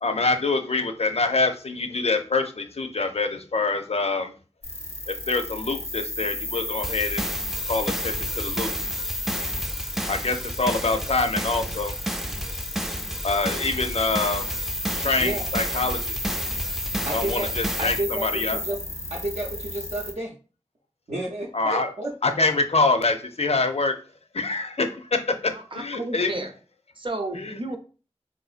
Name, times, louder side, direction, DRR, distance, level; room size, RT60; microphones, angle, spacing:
voice 1, 0.0-4.3 5.1-7.3 7.7-8.7 10.1-12.0 13.2-14.5 15.0-16.0 17.1-18.6 21.5-21.9 22.2-23.9 24.3-26.4 27.3-27.5, left 3 dB, 65° left, 6 dB, 0.5 m, -25 dB
sound 1, 4.6-20.1, left 2 dB, 85° left, 1.0 m, -33 dB
sound 2, 6.8-18.0, right 1 dB, 5° right, 0.3 m, -32 dB
voice 2, 17.0-17.5 17.8-18.8 19.1-20.3 21.1-22.4, right 1 dB, 90° right, -5 dB, 0.6 m, -31 dB
voice 3, 25.5-26.5 27.0-27.8, right 2 dB, 45° right, 4 dB, 0.6 m, -32 dB
3.7 x 2.5 x 2.4 m, 0.36 s
wide cardioid pair, 40°, 12 cm